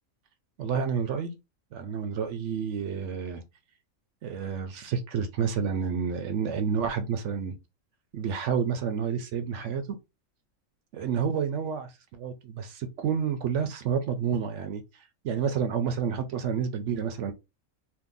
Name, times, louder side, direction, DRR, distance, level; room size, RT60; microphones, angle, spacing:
voice 1, 0.6-1.3 1.7-3.4 4.2-7.6 8.1-10.0 10.9-14.8 15.2-17.3, right 7 dB, 65° right, 0.9 m, -29 dB
2.7 x 2.5 x 3.7 m
omnidirectional pair, 1.4 m